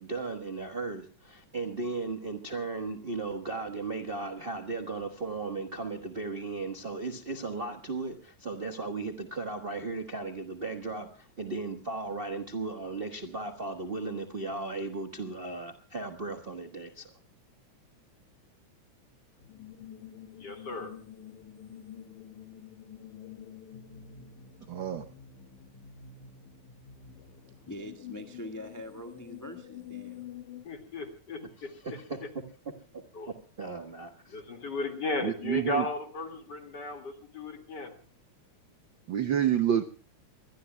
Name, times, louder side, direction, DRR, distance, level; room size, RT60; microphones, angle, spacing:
voice 1, 0.0-17.1 31.8-32.2 33.6-34.1, right 3 dB, 65° right, 4 dB, 0.5 m, -36 dB
sound 1, 19.4-30.7, left 9 dB, 85° left, 2.6 m, -48 dB
voice 2, 20.4-20.9 30.6-31.7 33.1-33.3 34.3-37.9, left 2 dB, 40° left, 5 dB, 2.6 m, -35 dB
voice 3, 24.7-25.0 35.2-35.8 39.1-39.8, right 10 dB, 85° right, 9 dB, 1.0 m, -27 dB
voice 4, 27.5-30.3, left 1 dB, 15° left, 5 dB, 0.7 m, -43 dB
24.5 x 21.0 x 2.3 m, 0.41 s
omnidirectional pair, 3.3 m